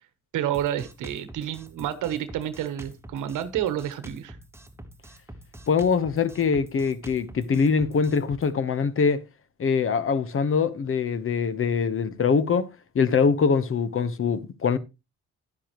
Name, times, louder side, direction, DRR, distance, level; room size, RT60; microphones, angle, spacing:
voice 1, 0.3-4.4, right 11 dB, 85° right, 1.1 m, -29 dB
Drum kit, 0.5-8.5, right 1 dB, 10° right, 1.2 m, -46 dB
voice 2, 5.7-9.2 9.6-12.7 12.9-14.8, left 5 dB, 45° left, 1.0 m, -23 dB
11.0 x 10.0 x 3.0 m
cardioid pair, 90°, 30 cm